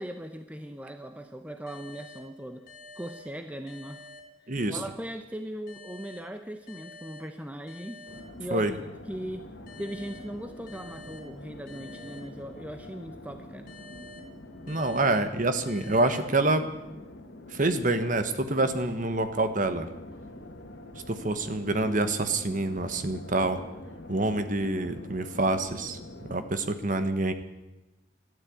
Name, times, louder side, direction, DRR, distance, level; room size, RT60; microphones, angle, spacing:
voice 1, 0.0-2.6 3.0-4.0 4.7-8.0 8.4-9.5 9.8-13.7, equal, 5° right, 7 dB, 0.7 m, -39 dB
sound 1, 1.7-5.0 5.7-9.0 9.7-13.0 13.7-17.0, left 2 dB, 45° left, 2.8 m, -50 dB
voice 2, 4.5-4.8 8.5-8.7 14.7-16.6 17.5-19.9 21.1-23.6 24.1-26.0 26.3-27.3, right 2 dB, 40° right, 9 dB, 1.2 m, -26 dB
sound 2, 8.1-26.5, left 1 dB, 60° left, 1.7 m, -45 dB
12.5 x 12.5 x 8.4 m, 1.0 s
head